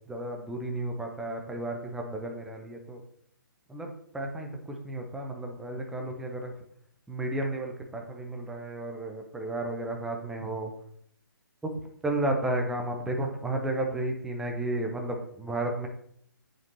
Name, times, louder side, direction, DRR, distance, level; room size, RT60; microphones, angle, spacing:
voice 1, 0.1-3.0 3.7-6.5 7.1-10.7 11.6-11.7 12.0-15.9, right 1 dB, 5° right, 2 dB, 0.7 m, -33 dB
7.9 x 7.0 x 2.8 m, 0.67 s
figure-of-eight pair, 135°, 11 cm